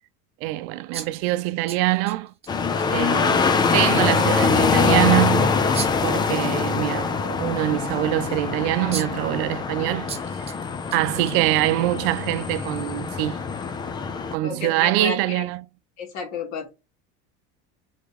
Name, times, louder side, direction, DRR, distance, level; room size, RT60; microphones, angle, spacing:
voice 1, 0.4-2.3 2.9-3.4 3.7-5.6 6.0-10.1 10.9-13.4 14.3-15.7, right 17 dB, 65° right, 0.7 m, -24 dB
sound 1, 0.9-2.5 2.8-2.9 3.4-3.5 5.7-6.1 8.4-8.5 8.9-9.3 10.1-10.6 10.9-11.9, right 6 dB, 20° right, 1.2 m, -35 dB
sound 2, 2.5-14.3, left 5 dB, 15° left, 0.4 m, -23 dB
voice 2, 14.4-15.4 16.0-16.7, left 5 dB, 55° left, 3.3 m, -32 dB
8.0 x 3.6 x 3.7 m
cardioid pair, 170°, 33 cm